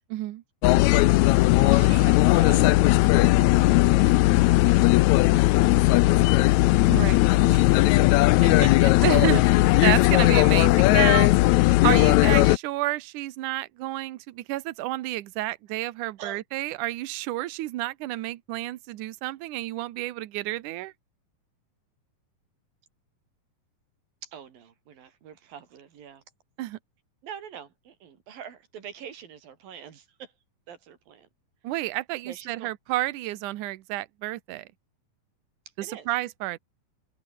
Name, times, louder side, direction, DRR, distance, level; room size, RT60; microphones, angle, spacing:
voice 1, 0.1-0.4 6.9-7.2 8.5-8.7 9.0-9.4 9.8-11.3 11.8-20.9 26.6-26.8 31.6-34.7 35.8-36.6, right 17 dB, 70° right, 2.4 m, -30 dB
sound 1, 0.6-12.6, left 19 dB, 90° left, 1.6 m, -18 dB
voice 2, 1.6-2.9 3.4-6.5 7.5-9.2 16.2-16.4 24.2-26.2 27.2-30.3 30.7-31.3 32.2-32.7 35.8-36.1, right 8 dB, 90° right, 4.6 m, -43 dB
omnidirectional pair, 4.0 m